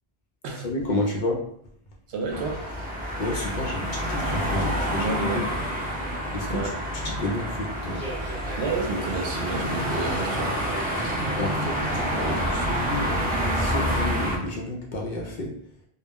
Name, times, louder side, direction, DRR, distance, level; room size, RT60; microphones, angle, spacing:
voice 1, 0.6-1.4 3.2-5.4 6.3-6.7 7.0-8.1 11.4-15.5, left 2 dB, 60° left, -1 dB, 0.6 m, -30 dB
voice 2, 2.1-2.9 5.0-5.5 6.5-6.8 8.6-10.5, right 3 dB, 80° right, 2 dB, 0.8 m, -30 dB
sound 1, 2.3-14.4, equal, 10° right, 0.7 m, -28 dB
Human voice / Subway metro underground, 7.8-13.3, right 1 dB, 55° right, 0.9 m, -39 dB
2.2 x 2.0 x 3.4 m, 0.68 s
omnidirectional pair, 1.1 m